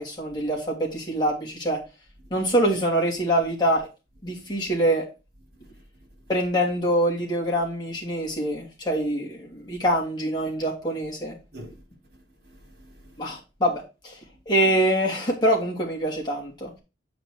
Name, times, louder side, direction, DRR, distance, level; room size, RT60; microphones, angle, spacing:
voice 1, 0.0-1.8 2.3-3.9 4.2-5.0 6.3-11.3 13.2-14.2 14.5-16.8, right 1 dB, 25° left, 2.9 m, -25 dB
voice 2, 5.5-5.8 11.5-11.8 12.4-13.4, equal, 55° right, 3.9 m, -47 dB
8.4 x 5.1 x 4.7 m
head